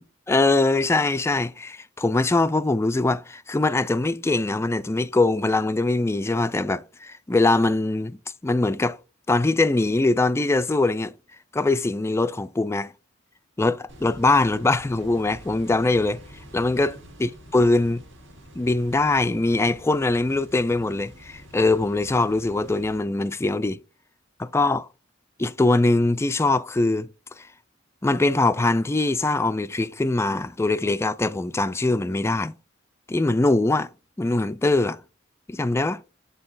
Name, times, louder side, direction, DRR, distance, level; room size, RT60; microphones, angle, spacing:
voice 1, 0.3-8.2 8.4-9.0 9.3-11.1 11.5-12.9 13.6-16.2 16.5-18.0 18.6-23.8 24.4-24.9 25.4-27.1 27.4-27.5 28.0-32.5 33.1-33.9 34.2-35.0 35.5-36.0, left 2 dB, 15° left, 0.3 m, -22 dB
sound 1, 13.9-23.0, equal, 70° right, 2.0 m, -46 dB
7.8 x 4.0 x 3.9 m
head